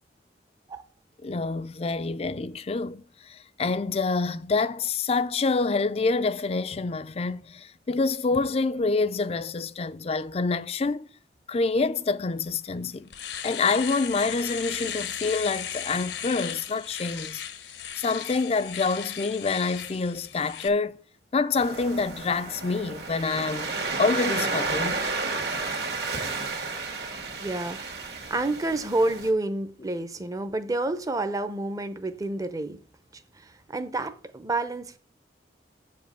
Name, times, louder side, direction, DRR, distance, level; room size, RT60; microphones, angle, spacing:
voice 1, 1.2-11.0 11.5-13.1 13.4-17.4 18.0-21.0 21.3-23.7 24.0-25.0, left 4 dB, 35° left, 0.4 m, -27 dB
Domestic sounds home sounds, 12.5-12.6 12.9-20.7, left 9 dB, 80° left, 0.9 m, -36 dB
Waves surf, 21.6-29.3, right 3 dB, 60° right, 1.8 m, -32 dB
voice 2, 27.4-32.8 33.3-35.0, right 2 dB, 20° right, 0.7 m, -29 dB
7.6 x 5.2 x 6.7 m
head